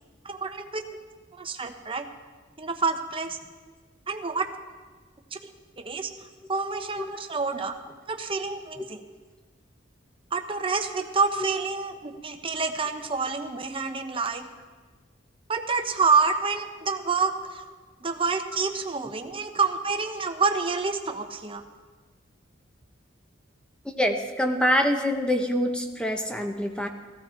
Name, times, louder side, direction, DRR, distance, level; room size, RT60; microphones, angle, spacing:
voice 1, 0.2-0.8 1.3-2.1 2.6-3.4 4.1-4.5 5.3-5.4 5.8-7.8 8.1-9.0 10.3-14.5 15.5-17.7 18.0-21.6, right 4 dB, 30° right, 5 dB, 0.9 m, -28 dB
voice 2, 23.8-26.9, equal, 5° left, 4 dB, 1.1 m, -25 dB
15.5 x 14.5 x 4.4 m, 1.4 s
head